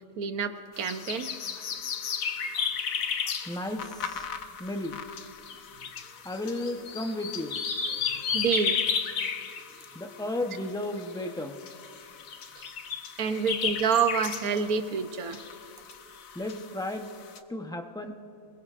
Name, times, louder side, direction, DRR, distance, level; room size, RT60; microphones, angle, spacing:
voice 1, 0.2-1.3 8.0-8.8 12.6-12.7 13.2-15.4, right 6 dB, 85° right, 9 dB, 1.4 m, -28 dB
sound 1, 0.7-17.4, left 6 dB, 70° left, 1.3 m, -34 dB
voice 2, 1.7-2.6 3.2-4.3 4.6-5.0 6.0-7.6 7.9-8.3 9.4-9.6 9.9-11.6 13.3-13.4 15.9-16.0 16.3-17.1 17.5-18.1, left 1 dB, 5° left, 4 dB, 0.7 m, -35 dB
26.0 x 21.0 x 2.5 m, 2.6 s
omnidirectional pair, 1.5 m